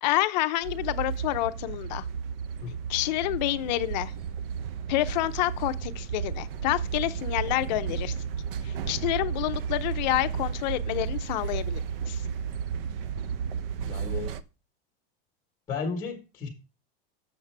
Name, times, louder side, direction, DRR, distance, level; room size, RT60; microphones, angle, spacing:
voice 1, 0.0-2.0 2.9-4.1 4.9-8.1 8.9-11.8 12.1-12.2, left 16 dB, 50° left, 0.5 m, -28 dB
sound 1, 0.6-14.4, right 7 dB, 70° right, 0.6 m, -33 dB
voice 2, 13.8-14.3 15.7-16.5, left 5 dB, 15° left, 1.2 m, -34 dB
7.2 x 6.5 x 3.2 m
supercardioid pair, 175°, 29 cm